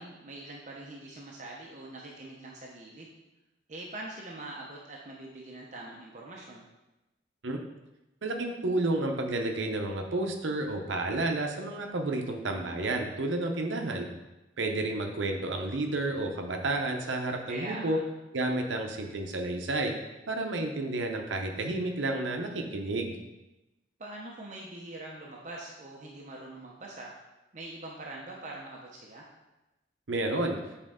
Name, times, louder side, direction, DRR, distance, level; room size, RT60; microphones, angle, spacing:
voice 1, 0.0-3.1 3.7-6.6 17.5-18.0 24.0-27.1 27.5-29.3, right 2 dB, 40° right, -2 dB, 0.7 m, -43 dB
voice 2, 8.2-14.1 14.6-18.0 18.3-19.9 20.3-23.2 30.1-30.6, right 2 dB, 90° right, 3 dB, 0.7 m, -31 dB
7.6 x 4.4 x 3.6 m, 1.0 s
head